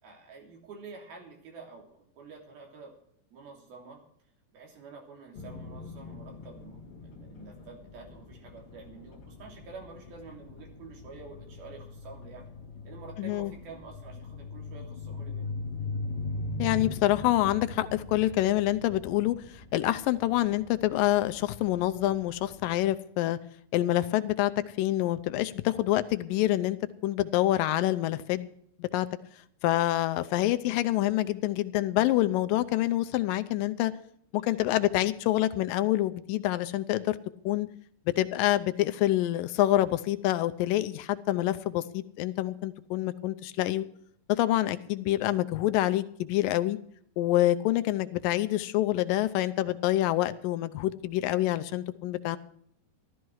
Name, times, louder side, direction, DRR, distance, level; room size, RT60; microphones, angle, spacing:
voice 1, 0.0-2.9 3.3-4.0 4.5-12.4 12.9-15.5, right 4 dB, 75° right, 1 dB, 5.0 m, -48 dB
sound 1, 5.3-22.8, left 3 dB, 50° left, 2.0 m, -41 dB
voice 2, 13.2-13.5 16.6-23.4 23.7-24.5 24.8-26.8 27.0-28.5 28.8-29.1 29.6-33.9 34.3-37.2 37.5-37.7 38.2-43.8 44.3-46.8 47.2-52.4, left 15 dB, 80° left, 11 dB, 2.2 m, -27 dB
15.5 x 13.0 x 4.7 m, 0.65 s
omnidirectional pair, 4.3 m